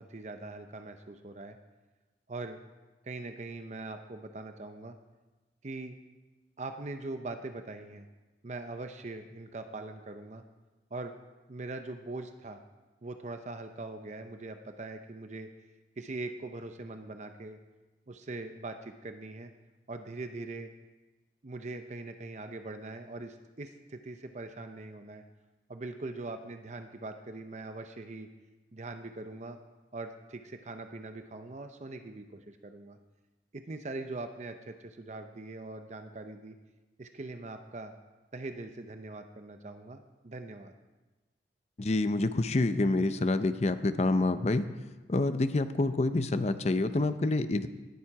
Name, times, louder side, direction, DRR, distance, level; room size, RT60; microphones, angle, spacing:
voice 1, 0.0-1.6 2.3-2.6 3.0-5.0 5.6-6.0 6.6-8.1 8.4-10.4 10.9-11.2 11.5-12.6 13.0-15.5 16.0-17.6 18.1-19.5 19.9-20.7 21.4-25.2 25.7-28.3 28.7-29.6 29.9-33.0 33.5-36.6 37.0-37.9 38.3-40.7, right 2 dB, 40° right, 7 dB, 0.6 m, -41 dB
voice 2, 41.8-44.6 45.1-47.7, left 2 dB, 40° left, 11 dB, 0.6 m, -27 dB
18.5 x 7.5 x 4.7 m, 1.2 s
head